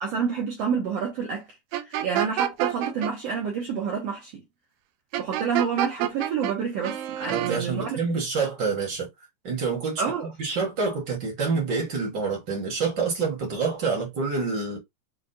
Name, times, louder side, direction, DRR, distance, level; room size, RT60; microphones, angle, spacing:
voice 1, 0.0-1.5 1.8-4.3 5.2-8.0 10.0-10.3, right 6 dB, 70° right, 1.5 m, -28 dB
sound 1, 1.7-3.1 5.1-6.5 6.8-7.6, right 12 dB, 90° right, 2.3 m, -27 dB
voice 2, 7.3-9.1 9.4-14.8, right 4 dB, 50° right, 1.4 m, -27 dB
6.2 x 2.3 x 2.7 m
omnidirectional pair, 3.9 m